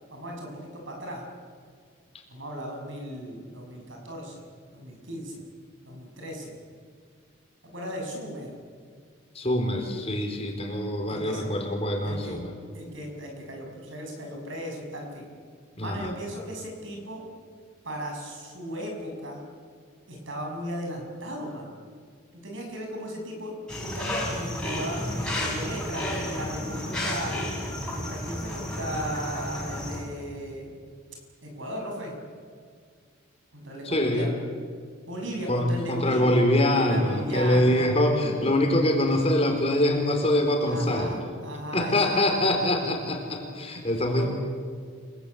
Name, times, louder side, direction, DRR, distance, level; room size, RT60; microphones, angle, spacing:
voice 1, 0.1-1.2 2.3-4.4 4.7-5.4 5.8-6.6 7.6-8.5 11.1-11.5 12.0-12.4 12.7-15.3 15.8-17.2 17.8-19.4 20.1-21.7 22.3-27.3 27.9-30.7 31.4-32.1 33.5-34.3 35.1-36.4 36.7-37.9 40.7-42.2 44.1-44.3, equal, 65° right, 1 dB, 7.3 m, -36 dB
voice 2, 9.3-12.5 15.8-16.1 33.8-34.3 35.5-41.1 41.7-44.3, left 1 dB, 30° left, 3 dB, 3.9 m, -24 dB
sound 1, 23.7-30.0, left 1 dB, 5° left, 5.8 m, -32 dB
29.5 x 19.5 x 8.6 m, 2.1 s
head